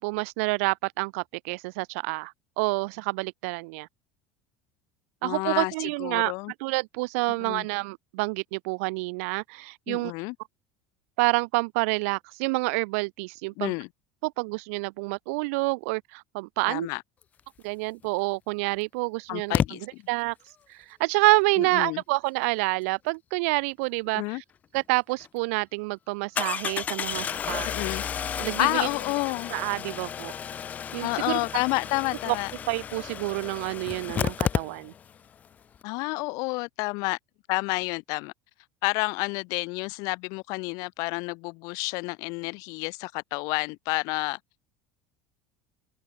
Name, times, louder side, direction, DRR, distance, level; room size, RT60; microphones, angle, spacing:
voice 1, 0.0-3.9 5.2-6.3 6.6-10.1 11.2-13.7 14.2-16.9 17.6-19.5 20.1-20.3 20.7-24.4 24.7-27.7 28.4-28.9 29.5-30.3 30.9-31.4 32.3-32.4 32.7-34.9, right 28 dB, 70° right, 0.9 m, -28 dB
voice 2, 5.2-6.5 7.4-7.7 9.9-10.3 13.6-13.9 16.7-17.0 19.3-20.0 21.6-22.0 24.1-24.4 27.6-28.0 28.6-29.5 31.0-32.5 35.8-37.2 37.5-38.3 38.8-44.4, left 28 dB, 50° left, 0.9 m, -30 dB
Engine starting, 18.0-18.1 19.5-19.7 24.7-24.8 25.2-25.3 26.4-35.2 35.4-35.5 35.7-35.8, left 8 dB, 20° left, 0.6 m, -32 dB
open air
cardioid pair, 180°, 8 cm